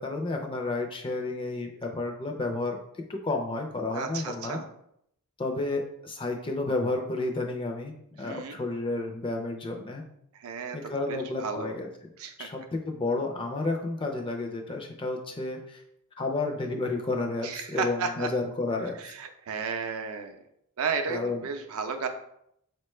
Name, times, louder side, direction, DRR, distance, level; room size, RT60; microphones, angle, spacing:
voice 1, 0.0-2.8 3.1-4.6 5.4-10.0 10.7-11.9 12.4-15.8 16.2-19.1 21.1-21.4, left 2 dB, 25° left, 3 dB, 0.4 m, -31 dB
voice 2, 3.9-4.6 8.2-8.6 10.3-10.8 11.1-11.7 12.2-12.5 17.4-18.3 19.0-20.4 20.8-22.1, right 5 dB, 70° right, 6 dB, 0.5 m, -33 dB
4.7 x 2.2 x 3.1 m, 0.74 s
head